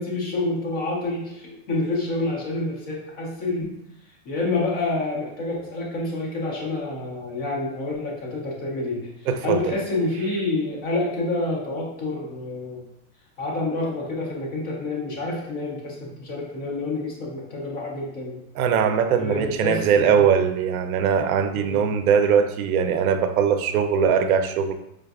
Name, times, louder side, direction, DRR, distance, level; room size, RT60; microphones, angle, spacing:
voice 1, 0.0-3.7 4.2-9.1 9.4-12.8 13.4-18.4 19.1-20.2 21.5-21.8, left 2 dB, 20° left, -3 dB, 0.4 m, -28 dB
voice 2, 9.3-9.7 18.5-24.7, right 7 dB, 80° right, 8 dB, 0.6 m, -21 dB
5.0 x 2.5 x 2.3 m, 0.83 s
supercardioid pair, 165°, 43 cm